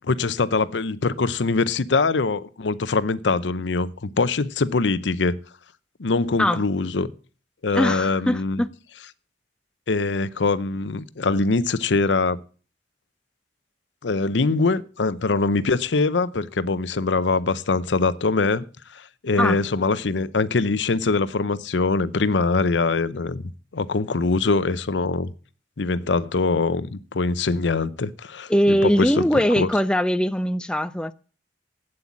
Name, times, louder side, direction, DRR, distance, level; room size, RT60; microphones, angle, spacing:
voice 1, 0.0-5.4 6.0-7.1 7.6-8.6 9.9-12.4 14.0-18.7 18.9-23.4 23.7-25.3 25.8-29.2 29.6-29.7, left 3 dB, 90° left, 0.7 m, -23 dB
voice 2, 7.7-8.7 19.4-19.6 28.5-31.1, equal, 5° left, 0.4 m, -21 dB
8.7 x 7.8 x 7.3 m
head